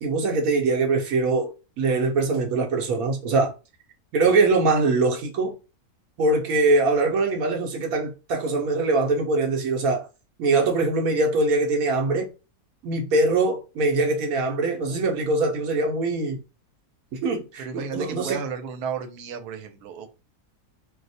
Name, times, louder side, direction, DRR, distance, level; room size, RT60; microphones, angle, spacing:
voice 1, 0.0-3.5 4.1-5.6 6.2-10.1 10.4-12.3 12.8-16.4 17.1-18.4, right 3 dB, 70° right, 1.0 m, -23 dB
voice 2, 17.6-20.1, right 6 dB, 90° right, 1.2 m, -33 dB
2.6 x 2.0 x 4.0 m
omnidirectional pair, 1.6 m